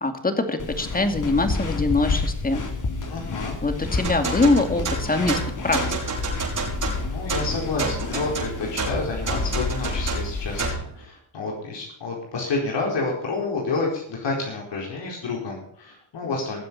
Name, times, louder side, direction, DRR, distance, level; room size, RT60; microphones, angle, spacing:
voice 1, 0.0-2.6 3.6-5.8, left 3 dB, 20° left, 7 dB, 2.4 m, -23 dB
sound 1, 0.6-10.7, left 3 dB, 40° left, 3.1 m, -30 dB
voice 2, 3.1-3.5 7.1-16.6, left 3 dB, 60° left, -1 dB, 4.5 m, -29 dB
sound 2, 4.0-10.9, right 3 dB, 40° right, 6.1 m, -29 dB
19.0 x 7.6 x 5.4 m, 0.69 s
cardioid pair, 90°, 48 cm